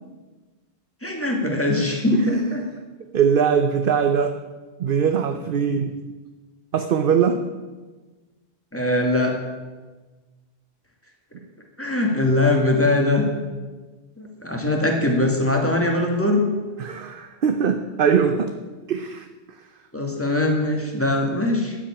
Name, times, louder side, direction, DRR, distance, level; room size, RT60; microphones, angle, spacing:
voice 1, 1.0-2.6 8.7-9.4 11.8-13.2 14.2-16.5 19.9-21.8, left 2 dB, 10° left, 1 dB, 2.2 m, -21 dB
voice 2, 2.1-2.6 3.1-4.4 4.8-5.9 6.7-7.4 16.8-18.5 18.9-19.3, right 7 dB, 55° right, 8 dB, 0.9 m, -21 dB
12.5 x 7.5 x 8.8 m, 1.3 s
omnidirectional pair, 1.1 m